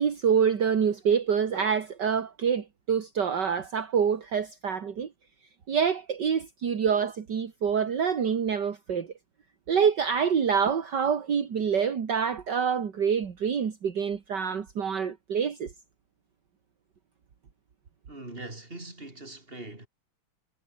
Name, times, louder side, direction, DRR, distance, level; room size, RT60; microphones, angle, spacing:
voice 1, 0.0-5.1 5.7-9.1 9.7-15.7, right 7 dB, 60° right, 2.4 m, -26 dB
voice 2, 18.1-19.9, right 2 dB, 25° right, 5.1 m, -42 dB
omnidirectional pair, 2.2 m